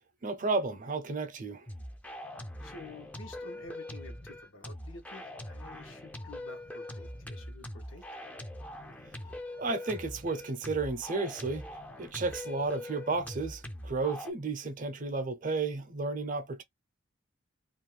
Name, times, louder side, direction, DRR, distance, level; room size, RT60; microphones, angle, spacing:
voice 1, 0.2-1.7 9.6-11.7 12.0-16.6, right 3 dB, 45° right, 0.5 m, -32 dB
sound 1, 1.7-14.3, left 1 dB, 10° left, 0.4 m, -43 dB
voice 2, 2.6-8.1, left 2 dB, 85° left, 0.9 m, -50 dB
2.5 x 2.2 x 3.1 m
head